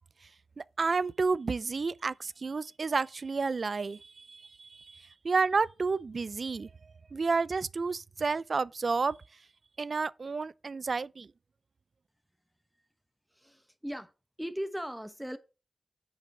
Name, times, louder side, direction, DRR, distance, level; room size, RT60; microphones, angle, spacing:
voice 1, 0.6-6.7 7.1-9.2 9.8-11.3, right 4 dB, 60° right, 0.3 m, -31 dB
voice 2, 13.4-14.1 14.4-15.4, equal, 5° right, 1.0 m, -38 dB
6.7 x 5.3 x 4.8 m
cardioid pair, 50°, 0 cm